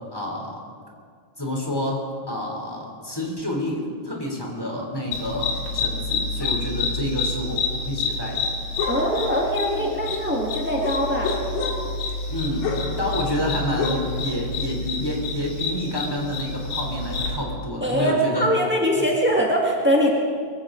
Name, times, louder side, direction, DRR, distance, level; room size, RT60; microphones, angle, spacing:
voice 1, 0.1-0.6 1.4-8.4 12.3-18.5, left 1 dB, 5° left, -1 dB, 2.8 m, -29 dB
sound 1, 5.1-17.4, left 3 dB, 65° left, 3.3 m, -28 dB
voice 2, 8.9-11.4 17.8-20.1, equal, 20° right, -2 dB, 0.3 m, -22 dB
23.0 x 16.0 x 3.8 m, 2.1 s
omnidirectional pair, 3.6 m